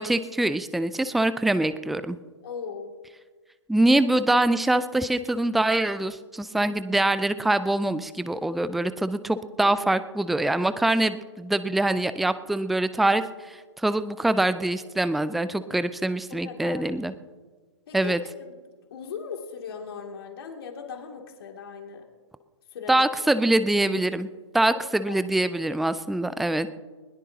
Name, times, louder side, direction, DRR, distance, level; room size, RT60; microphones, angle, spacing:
voice 1, 0.0-2.2 3.7-17.1 17.9-18.2 22.9-24.3 24.5-26.7, right 1 dB, ahead, 14 dB, 0.4 m, -24 dB
voice 2, 2.4-2.9 9.6-9.7 16.4-16.8 17.9-18.1 18.9-22.0 22.7-23.0 23.3-23.5 25.0-25.3, left 6 dB, 50° left, 2 dB, 2.6 m, -38 dB
21.0 x 20.5 x 2.9 m, 1.4 s
figure-of-eight pair, 125°, 16 cm